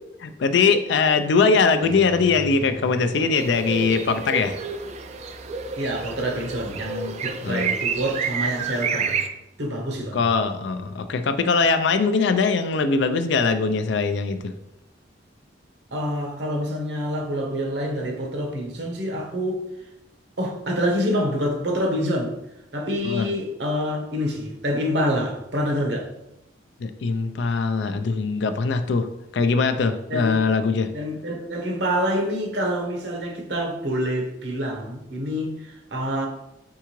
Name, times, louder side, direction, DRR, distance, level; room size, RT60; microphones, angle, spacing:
voice 1, 0.2-4.5 7.4-7.7 10.1-14.5 23.0-23.2 26.8-29.1 29.3-30.9, left 4 dB, 70° left, 9 dB, 0.4 m, -21 dB
sound 1, 1.8-8.7, left 1 dB, 25° left, 0.7 m, -41 dB
sound 2, 3.4-9.3, right 5 dB, 35° right, 0.3 m, -29 dB
voice 2, 5.8-9.2 9.6-10.2 15.9-19.6 20.4-22.3 22.7-26.1 30.1-30.3 30.9-36.3, equal, 65° right, 1 dB, 1.0 m, -26 dB
4.6 x 3.6 x 3.0 m, 0.86 s
head